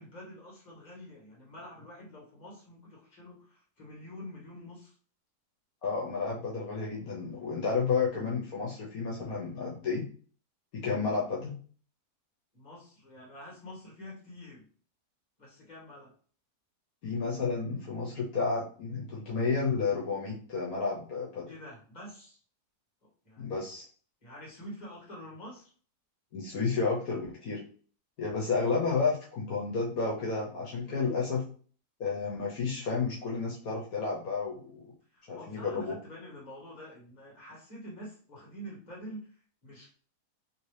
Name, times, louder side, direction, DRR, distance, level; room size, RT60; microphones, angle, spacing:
voice 1, 0.0-4.9 12.5-14.7 15.4-16.1 21.5-22.4 23.0-23.6 24.2-25.7 30.8-31.3 35.1-40.0, equal, 30° left, -4 dB, 1.6 m, -47 dB
voice 2, 5.8-10.0 10.7-11.5 17.0-21.5 23.4-23.8 26.3-27.6 28.2-31.4 32.0-34.9 35.3-35.9, left 4 dB, 70° left, -3 dB, 1.3 m, -31 dB
3.1 x 2.8 x 3.2 m, 0.42 s
omnidirectional pair, 1.7 m